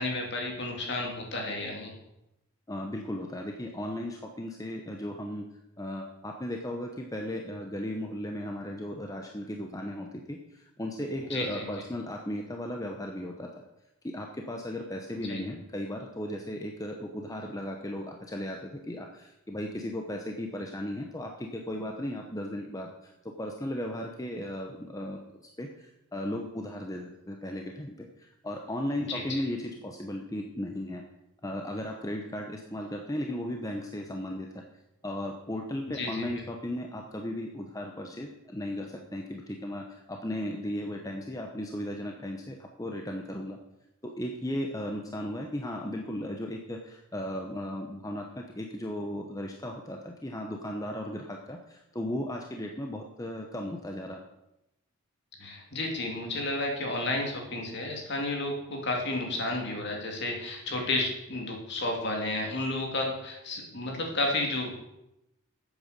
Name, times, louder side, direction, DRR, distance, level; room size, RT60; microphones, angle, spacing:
voice 1, 0.0-1.9 11.3-11.6 15.2-15.4 29.0-29.2 35.9-36.3 55.4-64.8, left 2 dB, 50° left, 1 dB, 2.5 m, -32 dB
voice 2, 2.7-5.5 5.8-13.6 14.0-31.0 31.4-34.6 35.0-43.6 44.0-54.2, left 1 dB, 15° left, 2 dB, 0.8 m, -36 dB
9.1 x 8.1 x 6.6 m, 0.88 s
head